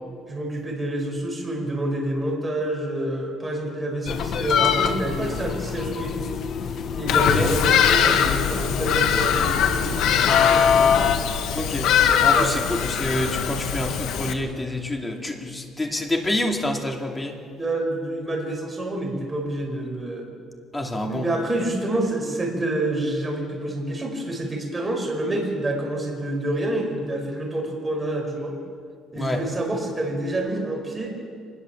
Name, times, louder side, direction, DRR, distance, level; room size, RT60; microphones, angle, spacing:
voice 1, 0.3-6.2 6.9-10.9 12.3-12.5 17.5-20.3 21.0-28.6 29.1-31.1, right 1 dB, 10° right, 0 dB, 5.4 m, -28 dB
sound 1, 4.1-11.2, left 7 dB, 50° left, 1.5 m, -25 dB
Bird vocalization bird call bird song, 7.1-14.3, left 8 dB, 75° left, 1.9 m, -22 dB
voice 2, 7.2-7.5 11.5-17.4 20.7-21.3 29.1-29.4, left 1 dB, 15° left, 2 dB, 2.6 m, -27 dB
25.0 x 21.0 x 7.4 m, 2.2 s
cardioid pair, 145°, 0 cm